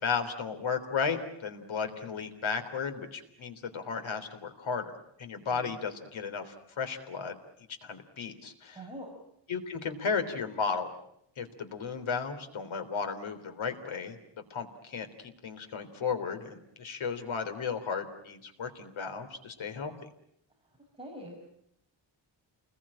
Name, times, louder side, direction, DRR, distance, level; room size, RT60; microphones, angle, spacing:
voice 1, 0.0-4.9 5.2-7.4 7.8-8.8 9.5-10.9 11.4-14.2 14.5-19.9, left 5 dB, 80° left, 7 dB, 3.6 m, -34 dB
voice 2, 5.3-5.8 8.7-9.1 21.0-21.4, equal, 10° right, -2 dB, 6.1 m, -44 dB
29.0 x 21.0 x 8.8 m, 0.76 s
wide cardioid pair, 175°, 47 cm